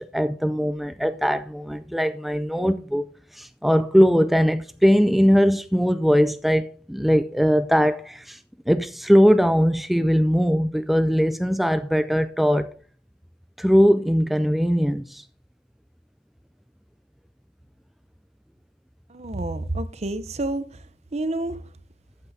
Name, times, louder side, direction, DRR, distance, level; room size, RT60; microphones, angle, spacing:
voice 1, 0.0-12.8 13.6-15.3, equal, ahead, 0.3 m, -20 dB
voice 2, 19.1-20.8 21.1-21.6, right 2 dB, 35° right, 0.7 m, -29 dB
14.0 x 8.9 x 2.7 m
head